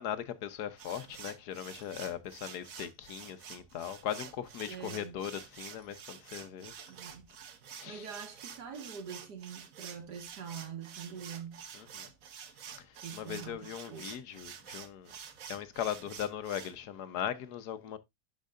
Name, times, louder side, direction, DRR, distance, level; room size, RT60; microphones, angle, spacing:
voice 1, 0.0-6.7 7.7-8.0 11.8-12.1 13.1-15.1 15.5-18.0, left 10 dB, 75° left, 1.4 m, -39 dB
sound 1, 0.8-16.7, right 7 dB, 60° right, 1.3 m, -49 dB
Clock, 1.6-2.1 2.7-3.0 3.8-4.0 4.7-5.0 5.8-5.9 6.7-7.0 7.8-7.9 8.7-9.0, equal, 40° right, 3.7 m, -63 dB
voice 2, 4.7-5.2 6.9-7.3 7.8-11.6 13.0-14.1, right 7 dB, 85° right, 2.2 m, -44 dB
12.0 x 4.7 x 2.5 m
omnidirectional pair, 1.7 m